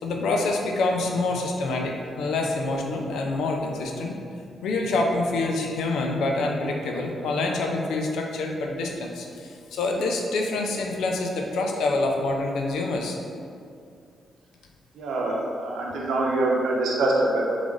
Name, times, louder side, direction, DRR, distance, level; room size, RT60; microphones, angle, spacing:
voice 1, 0.0-4.2 4.6-13.2, left 2 dB, 85° left, 1 dB, 0.5 m, -26 dB
voice 2, 15.0-17.4, right 2 dB, 85° right, -3 dB, 0.8 m, -24 dB
3.7 x 3.3 x 3.8 m, 2.4 s
cardioid pair, 100°, 0 cm